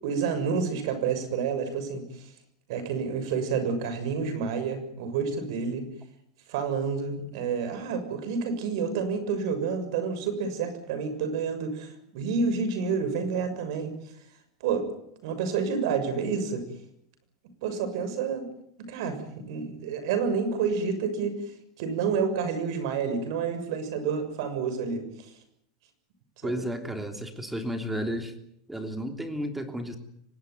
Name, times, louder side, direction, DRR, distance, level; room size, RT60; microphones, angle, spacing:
voice 1, 0.0-2.3 2.7-5.9 6.5-13.9 14.6-14.9 15.2-16.6 17.6-18.5 18.9-21.4 21.8-25.3 26.4-26.5, right 5 dB, 65° right, 10 dB, 6.8 m, -29 dB
voice 2, 26.4-28.3 28.7-30.0, equal, 5° right, 6 dB, 3.2 m, -32 dB
24.5 x 20.0 x 9.6 m, 0.75 s
supercardioid pair, 150°, 3 cm